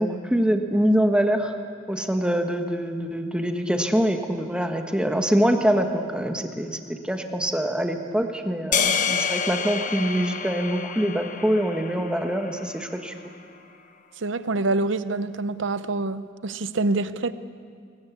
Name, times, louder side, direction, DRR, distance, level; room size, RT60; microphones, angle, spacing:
voice 1, 0.0-1.5 1.9-13.1, equal, 5° right, 4 dB, 1.4 m, -24 dB
sound 1, 8.7-13.1, left 6 dB, 40° left, 1.1 m, -28 dB
voice 2, 14.2-17.3, right 2 dB, 70° right, 13 dB, 0.8 m, -26 dB
22.0 x 20.0 x 8.4 m, 2.2 s
head